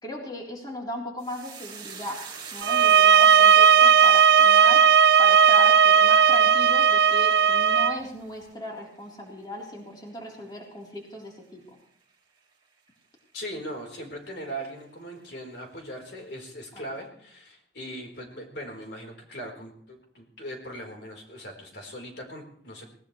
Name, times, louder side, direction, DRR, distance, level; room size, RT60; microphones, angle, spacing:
voice 1, 0.0-2.2 2.5-11.8 16.7-16.8, left 1 dB, 25° left, -2 dB, 3.8 m, -37 dB
sound 1, 1.2-9.8 10.1-10.8 11.0-11.3, right 6 dB, 25° right, 2.8 m, -46 dB
sound 2, 2.6-8.0, right 7 dB, 85° right, 0.6 m, -16 dB
voice 2, 13.3-22.9, equal, 75° left, 2 dB, 4.2 m, -39 dB
20.0 x 19.5 x 3.3 m, 0.64 s
head